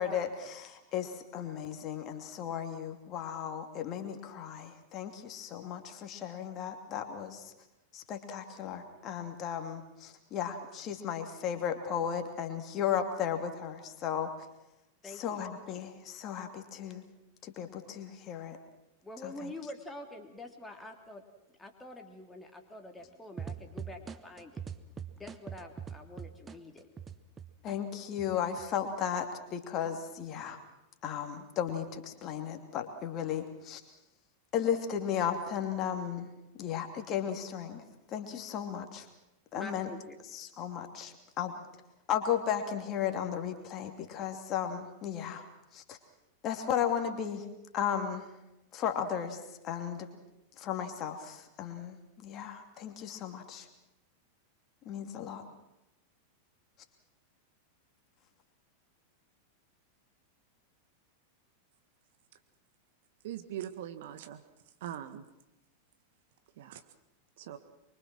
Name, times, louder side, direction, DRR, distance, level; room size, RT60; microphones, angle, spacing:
voice 1, 0.0-7.5 7.9-14.3 15.0-17.0 17.4-18.6 19.2-19.5 27.6-30.6 31.0-33.8 34.5-36.3 36.6-39.1 39.5-39.9 40.3-41.6 42.1-45.5 45.7-46.0 46.4-47.5 47.7-48.3 48.7-50.1 50.6-53.7 54.9-55.4, left 8 dB, 35° left, 5 dB, 2.8 m, -35 dB
voice 2, 15.0-15.4 19.0-21.2 21.6-24.6 25.2-26.9 39.5-40.2, left 2 dB, 10° left, 4 dB, 3.1 m, -46 dB
sound 1, 23.4-27.8 28.2-28.9, right 7 dB, 20° right, 1.2 m, -42 dB
voice 3, 63.2-64.4 64.8-65.2 66.6-66.8 67.4-67.6, right 11 dB, 55° right, 9 dB, 1.6 m, -41 dB
24.5 x 24.0 x 6.2 m, 0.91 s
figure-of-eight pair, 90°, 0 cm